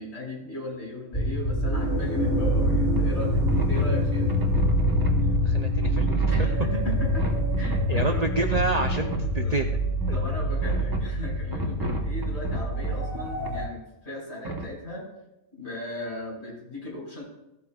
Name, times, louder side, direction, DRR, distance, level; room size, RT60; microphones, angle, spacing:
voice 1, 0.0-4.3 6.3-7.3 7.6-8.2 8.7-8.8 9.4-9.6 10.1-15.0 15.5-17.2, left 1 dB, 50° left, -5 dB, 4.5 m, -36 dB
sound 1, 1.1-13.7, equal, 15° left, 1.0 m, -25 dB
sound 2, 3.0-3.1 3.4-5.4 5.8-9.3 10.0-11.1 11.5-12.9 13.4-13.5 14.4-14.7, right 2 dB, 20° right, 0.8 m, -32 dB
voice 2, 5.4-6.5 7.9-9.7 10.1-10.2, right 3 dB, 80° right, 5 dB, 0.3 m, -28 dB
15.0 x 8.1 x 2.3 m, 0.92 s
omnidirectional pair, 1.4 m